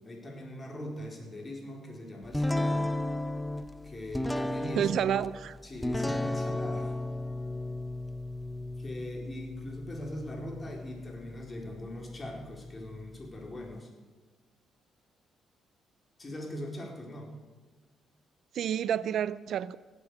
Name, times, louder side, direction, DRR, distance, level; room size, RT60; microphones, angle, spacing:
voice 1, 0.1-2.9 3.8-5.0 5.6-6.9 8.8-13.9 16.2-17.3, left 1 dB, 25° left, 4.2 m, -41 dB
sound 1, 2.3-13.8, left 1 dB, 5° left, 0.7 m, -35 dB
voice 2, 4.8-5.6 18.5-19.8, right 9 dB, 70° right, 0.4 m, -29 dB
17.0 x 8.4 x 8.2 m
cardioid pair, 90°, 0 cm